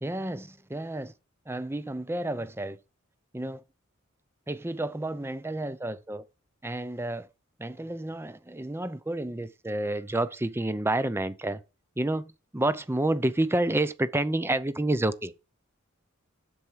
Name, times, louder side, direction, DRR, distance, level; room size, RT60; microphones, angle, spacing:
voice 1, 0.0-1.1 1.5-2.8 3.3-3.6 4.5-6.2 6.6-7.3 7.6-11.6 12.0-15.3, right 1 dB, 10° right, 0.6 m, -29 dB
8.1 x 7.0 x 4.5 m
head